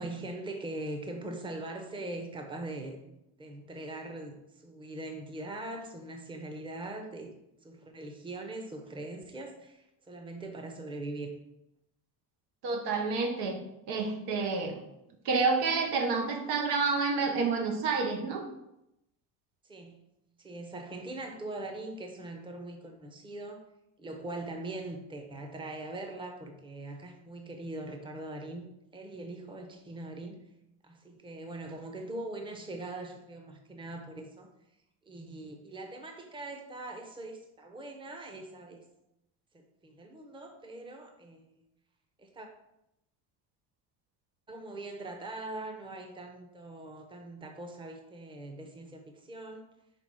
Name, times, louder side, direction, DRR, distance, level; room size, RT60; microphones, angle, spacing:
voice 1, 0.0-3.0 3.4-7.3 7.6-11.3 19.6-20.0 20.4-23.6 24.0-30.4 30.8-34.5 35.1-38.8 39.5-41.5 42.2-42.5 44.5-49.7, right 2 dB, 15° right, 4 dB, 0.7 m, -41 dB
voice 2, 12.6-13.6 13.9-14.8 15.2-18.4, right 4 dB, 85° right, 3 dB, 1.2 m, -29 dB
5.8 x 3.5 x 4.7 m, 0.85 s
cardioid pair, 140°, 39 cm